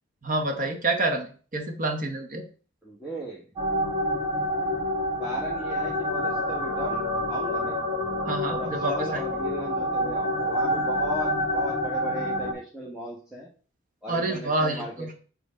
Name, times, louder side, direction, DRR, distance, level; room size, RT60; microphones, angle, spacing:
voice 1, 0.2-2.4 8.2-9.2 14.1-15.1, right 2 dB, 40° right, 5 dB, 1.0 m, -28 dB
voice 2, 2.8-3.4 5.2-7.8 8.5-13.5 14.0-15.1, equal, 5° right, -4 dB, 1.0 m, -37 dB
sound 1, 3.6-12.5, left 1 dB, 20° right, 1.7 m, -27 dB
7.7 x 3.1 x 4.9 m, 0.39 s
head